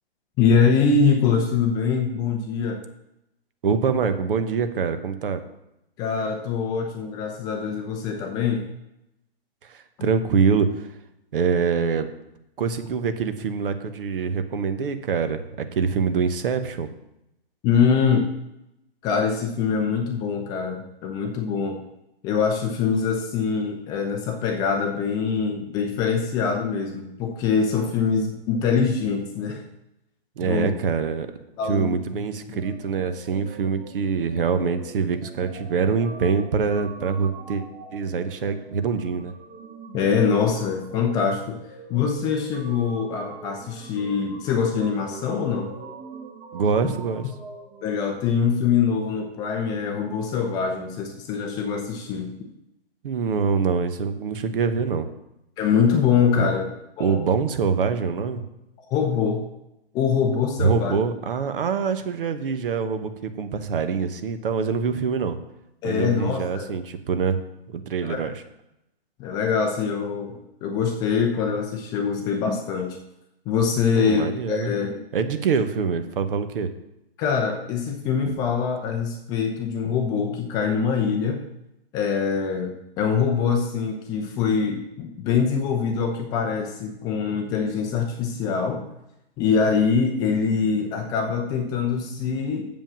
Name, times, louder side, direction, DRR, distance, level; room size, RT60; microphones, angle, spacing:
voice 1, 0.4-2.8 6.0-8.7 17.6-18.3 19.0-21.8 22.2-29.6 30.4-30.7 31.6-32.0 32.5-32.6 39.9-41.6 41.9-45.7 47.8-52.3 55.6-56.7 57.0-57.2 58.9-59.4 59.9-61.0 65.8-66.7 68.0-68.3 69.2-73.0 73.5-75.0 77.2-81.4 81.9-88.9 89.4-92.7, left 6 dB, 15° left, 3 dB, 0.5 m, -24 dB
voice 2, 3.6-5.4 9.7-10.9 11.3-12.1 12.6-16.9 30.4-31.3 31.7-37.6 37.9-39.3 46.5-47.2 53.0-55.1 56.4-56.5 57.0-58.4 60.6-65.4 65.8-67.4 67.7-68.3 73.9-74.7 75.1-76.7, right 5 dB, 60° right, 10 dB, 1.0 m, -24 dB
sound 1, 32.5-48.2, right 4 dB, 35° right, 1.6 m, -43 dB
7.4 x 5.3 x 7.3 m, 0.87 s
hypercardioid pair, 145°, 31 cm